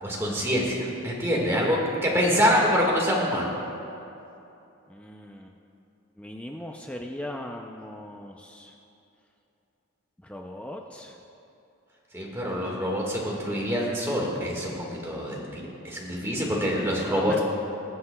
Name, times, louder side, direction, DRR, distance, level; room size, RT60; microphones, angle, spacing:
voice 1, 0.0-3.5 12.1-17.4, equal, 10° right, -3 dB, 1.5 m, -26 dB
voice 2, 4.9-5.5 6.2-8.7 10.2-11.2 17.1-17.4, left 1 dB, 5° left, 1 dB, 0.3 m, -38 dB
20.5 x 7.7 x 2.2 m, 2.8 s
head